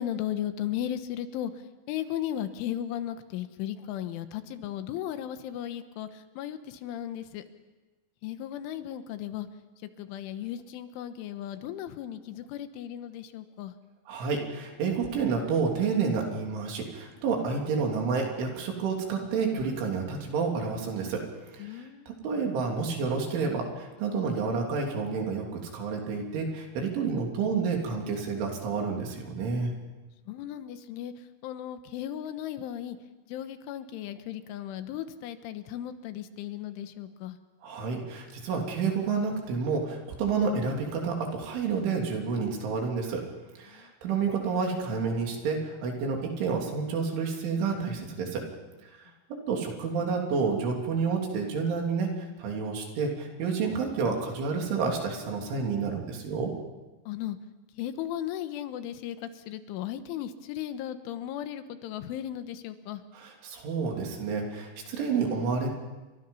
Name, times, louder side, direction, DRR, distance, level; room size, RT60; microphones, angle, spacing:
voice 1, 0.0-1.5 1.9-7.4 8.2-9.5 9.8-13.7 21.6-22.1 30.3-31.1 31.4-33.0 33.3-37.4 43.7-43.9 57.1-57.4 57.8-63.0, left 11 dB, 90° left, 10 dB, 3.6 m, -36 dB
voice 2, 14.1-21.2 21.5-21.8 22.2-29.7 37.6-43.2 43.6-48.5 49.5-56.5 63.2-65.7, right 5 dB, 80° right, 1 dB, 5.6 m, -29 dB
29.0 x 24.5 x 5.6 m, 1.2 s
omnidirectional pair, 5.5 m